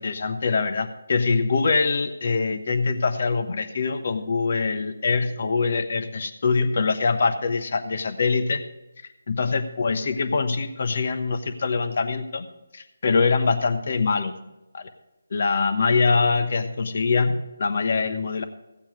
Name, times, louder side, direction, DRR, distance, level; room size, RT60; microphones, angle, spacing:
voice 1, 0.0-8.6 9.0-12.5 12.7-14.3 14.7-14.9 15.3-18.4, left 4 dB, 50° left, 9 dB, 1.1 m, -23 dB
14.5 x 8.8 x 4.9 m, 0.98 s
figure-of-eight pair, 155°, 0 cm